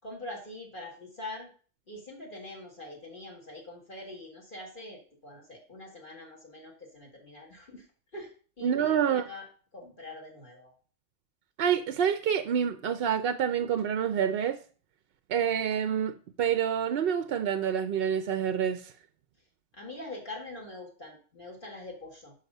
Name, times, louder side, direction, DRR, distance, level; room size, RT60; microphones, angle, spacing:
voice 1, 0.0-1.5 1.9-7.9 8.1-8.3 8.6-9.4 9.7-10.7 19.7-22.3, left 2 dB, 40° left, -1 dB, 1.9 m, -43 dB
voice 2, 8.6-9.3 11.6-14.6 15.3-18.9, right 8 dB, 60° right, 10 dB, 0.7 m, -27 dB
6.3 x 5.9 x 5.3 m, 0.41 s
omnidirectional pair, 1.3 m